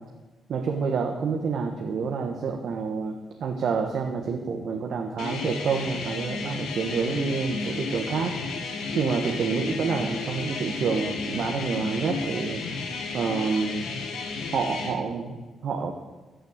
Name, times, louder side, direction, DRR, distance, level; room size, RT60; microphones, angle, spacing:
voice 1, 0.5-3.1 3.4-8.4 8.9-13.9 14.5-15.9, right 5 dB, 65° right, 3 dB, 1.3 m, -28 dB
sound 1, 5.2-15.0, left 4 dB, 80° left, 2.2 m, -33 dB
14.0 x 6.6 x 8.1 m, 1.2 s
cardioid pair, 95°, 0 cm